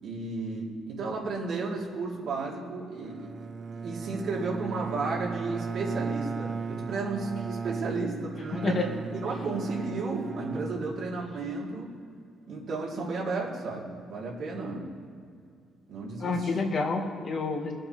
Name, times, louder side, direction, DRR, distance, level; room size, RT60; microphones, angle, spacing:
voice 1, 0.0-8.9 9.2-11.9 12.5-14.9 15.9-16.5, right 3 dB, 70° right, -4 dB, 3.4 m, -33 dB
Bowed string instrument, 3.0-11.5, right 5 dB, 45° right, 0.6 m, -36 dB
voice 2, 8.5-8.9 16.2-17.7, left 3 dB, 50° left, 1 dB, 2.1 m, -28 dB
21.5 x 7.7 x 3.5 m, 2.3 s
cardioid pair, 90°, 0 cm